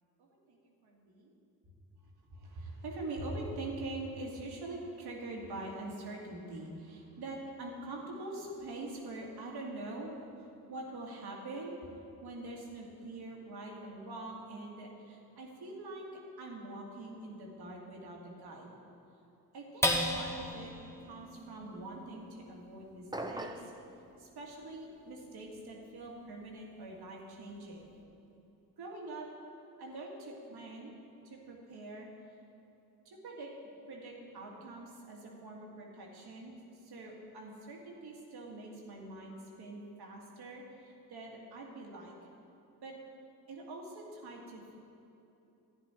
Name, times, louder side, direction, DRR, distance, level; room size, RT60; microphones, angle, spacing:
voice 1, 0.2-1.3 2.3-11.8 12.2-16.1 16.4-18.7 19.5-20.7 21.0-23.7 24.2-27.9 28.8-29.3 29.8-30.9 31.2-32.1 33.1-33.5 33.9-42.1 42.8-43.0 43.5-44.8, right 2 dB, 75° right, -1 dB, 2.1 m, -44 dB
sound 1, 19.8-26.5 27.0-27.1 27.5-28.0, left 1 dB, 5° left, 1.4 m, -38 dB
sound 2, 23.1-23.8, right 1 dB, 10° right, 0.8 m, -39 dB
11.5 x 9.9 x 4.5 m, 2.9 s
supercardioid pair, 55°, 39 cm